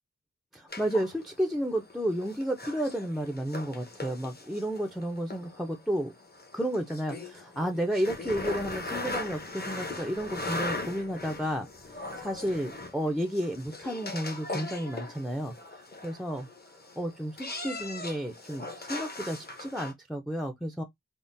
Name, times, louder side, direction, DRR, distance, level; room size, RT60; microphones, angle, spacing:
voice 1, 0.5-6.1 6.5-11.7 12.2-16.5 17.0-20.8, equal, ahead, 0.5 m, -32 dB
sound 1, 0.7-19.9, left 2 dB, 30° left, 0.8 m, -39 dB
3.5 x 2.0 x 2.6 m
wide cardioid pair, 50°, 32 cm